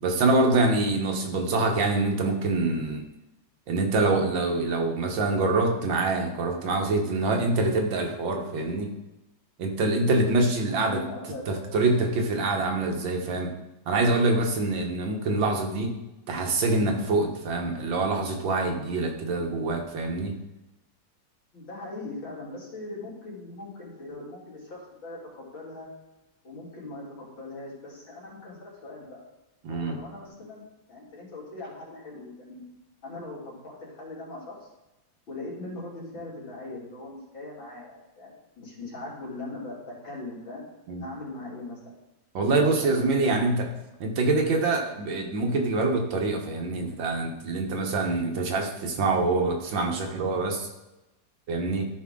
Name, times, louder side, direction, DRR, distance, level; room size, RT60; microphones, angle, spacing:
voice 1, 0.0-3.0 3.7-8.9 9.6-11.0 11.5-13.5 13.9-15.9 16.3-20.3 29.6-30.0 40.9-41.0 42.3-43.7 44.0-50.7 51.5-51.8, right 2 dB, 80° right, 2 dB, 2.0 m, -25 dB
voice 2, 10.7-12.0 21.5-25.9 26.4-29.2 29.7-30.6 30.9-32.6 33.0-34.7 35.3-40.7 41.0-41.8 42.5-43.5, left 2 dB, 85° left, -5 dB, 3.6 m, -40 dB
13.0 x 5.1 x 3.7 m, 0.99 s
omnidirectional pair, 2.1 m